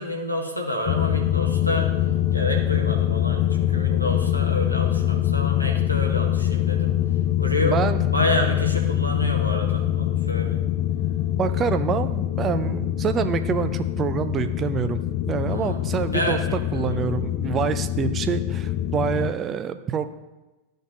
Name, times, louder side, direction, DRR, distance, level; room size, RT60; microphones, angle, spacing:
voice 1, 0.0-1.9 2.3-6.9 7.4-10.6 15.5-15.8 16.1-16.4 16.7-17.0, left 1 dB, 90° left, 1 dB, 1.2 m, -28 dB
sound 1, 0.9-19.3, left 12 dB, 45° left, 0.3 m, -24 dB
voice 2, 7.6-8.0 11.4-15.0 15.3-16.4 16.7-20.0, right 7 dB, 25° right, 10 dB, 0.5 m, -26 dB
14.0 x 5.2 x 2.6 m, 1.1 s
figure-of-eight pair, 90°, 0 cm